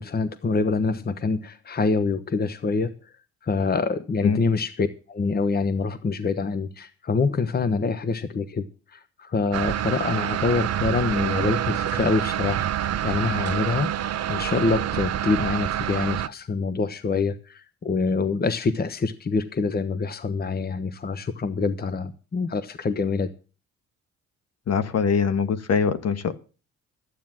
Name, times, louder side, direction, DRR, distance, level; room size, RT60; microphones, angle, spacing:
voice 1, 0.0-3.1 3.4-8.7 8.9-23.3, left 4 dB, 30° left, 1.1 m, -26 dB
sound 1, 9.5-16.3, right 11 dB, 55° right, 0.9 m, -27 dB
voice 2, 24.7-26.3, left 6 dB, 55° left, 1.4 m, -23 dB
12.5 x 9.3 x 7.6 m
cardioid pair, 90°, 30 cm